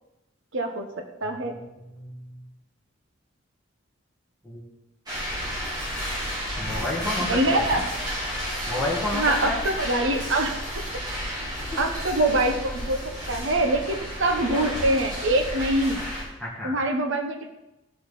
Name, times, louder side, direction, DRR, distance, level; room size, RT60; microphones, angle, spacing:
voice 1, 0.5-0.9 1.2-1.5 7.2-7.8 9.1-10.5 11.2-11.5 11.8-13.0 13.3-16.0 16.6-17.5, right 1 dB, 60° right, 5 dB, 1.1 m, -24 dB
voice 2, 1.5-2.4 4.4-4.6 6.6-7.8 8.7-9.6 16.4-16.8, left 2 dB, 5° left, -7 dB, 1.9 m, -31 dB
sound 1, 5.1-16.2, equal, 20° right, 3.1 m, -32 dB
15.5 x 6.5 x 4.0 m, 0.95 s
head